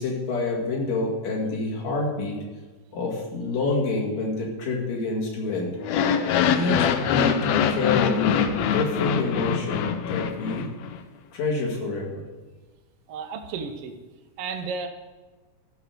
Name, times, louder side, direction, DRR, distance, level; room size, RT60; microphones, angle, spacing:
voice 1, 0.0-2.4 2.9-5.7 6.5-7.4 7.7-10.7 11.3-12.2, left 3 dB, 60° left, -2 dB, 3.2 m, -27 dB
sound 1, 5.8-11.0, left 8 dB, 80° left, 1.6 m, -24 dB
voice 2, 13.1-14.0 14.4-14.9, right 5 dB, 75° right, 4 dB, 1.4 m, -33 dB
14.0 x 5.1 x 6.7 m, 1.3 s
omnidirectional pair, 3.7 m